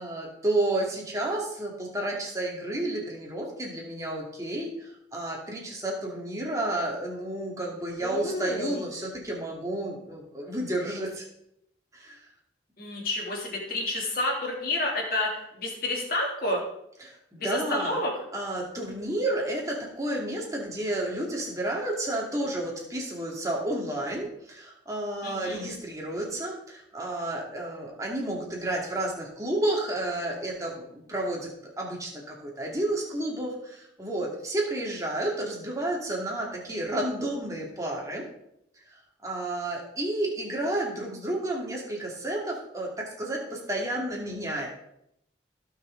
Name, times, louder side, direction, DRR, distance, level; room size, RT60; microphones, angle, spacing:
voice 1, 0.0-11.2 11.9-12.2 17.0-18.0 18.3-38.2 39.2-44.7, right 1 dB, 15° right, -2 dB, 2.3 m, -31 dB
voice 2, 8.0-8.8 12.8-16.6 17.4-18.1 25.2-25.6, left 1 dB, 50° left, -1 dB, 2.9 m, -30 dB
16.5 x 6.1 x 3.9 m, 0.77 s
head